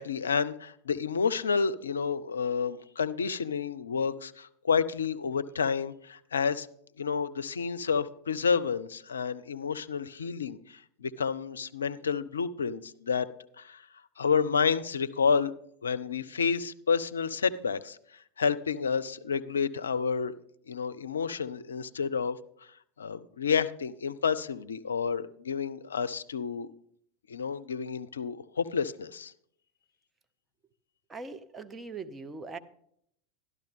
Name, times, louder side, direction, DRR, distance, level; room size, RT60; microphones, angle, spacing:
voice 1, 0.0-6.7 7.0-13.3 13.6-13.9 14.2-15.5 15.8-20.3 20.7-22.4 23.0-26.7 27.3-29.3, left 6 dB, 80° left, 13 dB, 0.4 m, -30 dB
voice 2, 31.1-32.6, right 4 dB, 20° right, 10 dB, 0.8 m, -41 dB
12.0 x 12.0 x 3.5 m, 0.70 s
figure-of-eight pair, 90°, 0 cm